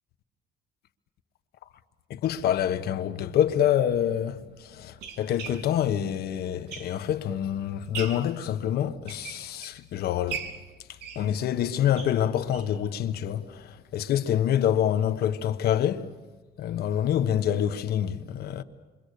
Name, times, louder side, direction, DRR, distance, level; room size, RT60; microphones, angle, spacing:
voice 1, 2.1-10.4 10.9-16.1 16.6-18.6, left 10 dB, 70° left, 1.4 m, -26 dB
sound 1, 3.5-3.6 4.3-7.3 7.7-8.3 8.9-9.8 10.3-12.8 13.2-13.3 13.6-13.7 14.0-14.1, right 7 dB, 75° right, 3.7 m, -40 dB
28.0 x 24.5 x 6.8 m
cardioid pair, 110°, 17 cm